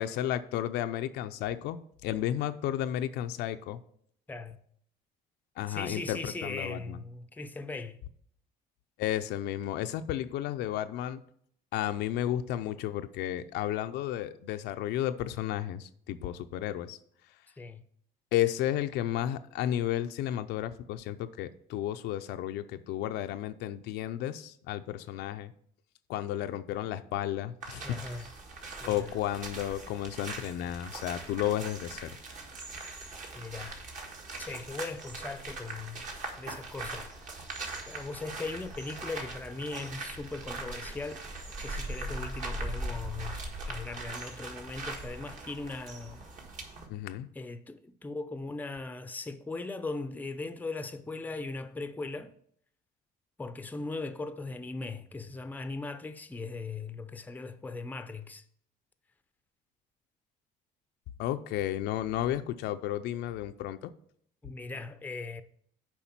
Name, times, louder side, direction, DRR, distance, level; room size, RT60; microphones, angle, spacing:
voice 1, 0.0-3.8 5.6-7.0 9.0-11.2 11.7-17.0 18.3-25.5 26.1-27.8 28.8-32.2 46.9-47.3 61.2-63.9, left 12 dB, 85° left, 0.5 m, -33 dB
voice 2, 4.3-4.6 5.7-8.0 17.6-17.8 27.8-28.3 28.8-29.2 33.3-33.8 34.4-36.1 36.4-37.5 37.9-41.3 41.6-46.2 47.3-52.3 53.4-58.4 64.4-65.4, left 3 dB, 10° left, 0.5 m, -39 dB
sound 1, 27.6-46.9, right 2 dB, 50° right, 1.6 m, -41 dB
7.1 x 4.8 x 5.9 m
cardioid pair, 110°, 17 cm